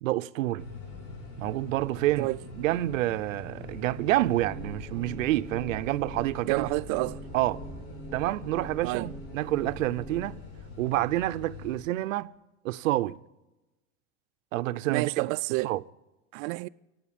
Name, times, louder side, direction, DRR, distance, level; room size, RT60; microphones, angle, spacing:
voice 1, 0.0-0.7 1.4-2.3 2.6-6.7 7.3-7.6 8.1-10.4 10.8-12.4 12.6-13.2 14.5-15.3 15.6-15.8, right 16 dB, 90° right, 0.6 m, -28 dB
sound 1, 0.6-11.8, left 3 dB, 65° left, 7.1 m, -44 dB
sound 2, 4.4-10.4, right 1 dB, ahead, 1.1 m, -44 dB
voice 2, 6.4-7.2 8.8-9.1 14.9-15.7 16.3-16.7, right 25 dB, 50° right, 0.4 m, -29 dB
18.0 x 8.0 x 9.1 m
supercardioid pair, 120°, 38 cm